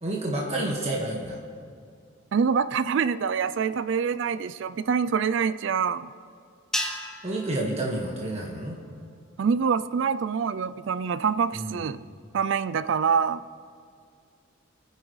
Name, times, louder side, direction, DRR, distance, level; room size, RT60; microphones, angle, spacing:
voice 1, 0.0-1.4 7.2-8.8 11.5-11.8, right 1 dB, 30° right, -3 dB, 1.6 m, -29 dB
voice 2, 2.3-6.1 9.4-12.0 12.3-13.4, right 6 dB, 60° right, 14 dB, 0.3 m, -25 dB
sound 1, 6.7-9.2, left 1 dB, 5° left, 0.7 m, -36 dB
29.0 x 10.0 x 3.2 m, 2.2 s
head